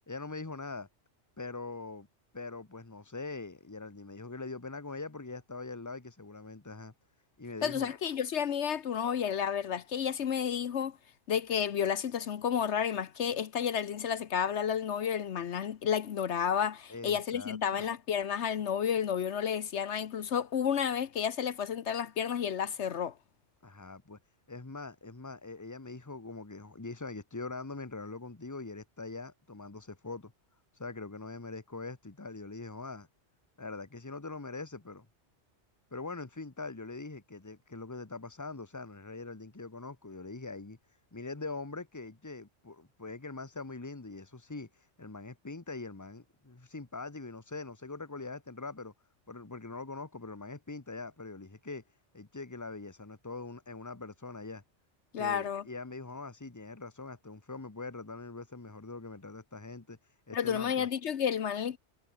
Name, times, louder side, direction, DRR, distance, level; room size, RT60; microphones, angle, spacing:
voice 1, 0.1-0.9 1.4-2.1 2.3-6.9 7.4-7.9 16.9-17.9 23.6-24.2 24.5-30.3 30.8-33.1 33.6-35.1 35.9-40.8 41.1-44.7 45.0-48.9 49.3-51.8 52.1-54.6 55.2-60.0 60.3-60.9, left 3 dB, 15° left, 1.4 m, -42 dB
voice 2, 7.6-11.0 11.3-23.1 55.1-55.6 60.3-61.8, left 8 dB, 75° left, 1.2 m, -31 dB
omnidirectional pair, 1.2 m